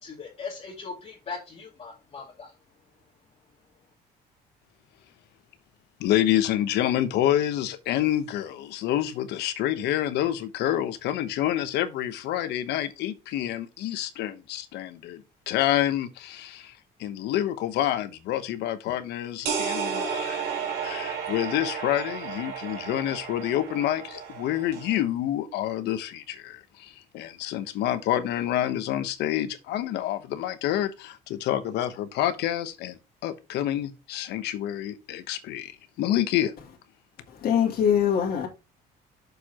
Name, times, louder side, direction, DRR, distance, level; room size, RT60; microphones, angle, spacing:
voice 1, 0.0-2.5, left 4 dB, 40° left, 2.5 m, -39 dB
voice 2, 6.0-16.7 17.0-36.5, left 12 dB, 80° left, 1.0 m, -28 dB
sound 1, 19.5-25.0, right 7 dB, 85° right, 3.4 m, -33 dB
voice 3, 37.3-38.5, left 8 dB, 60° left, 2.3 m, -23 dB
6.8 x 4.6 x 4.9 m
cardioid pair, 110°, 17 cm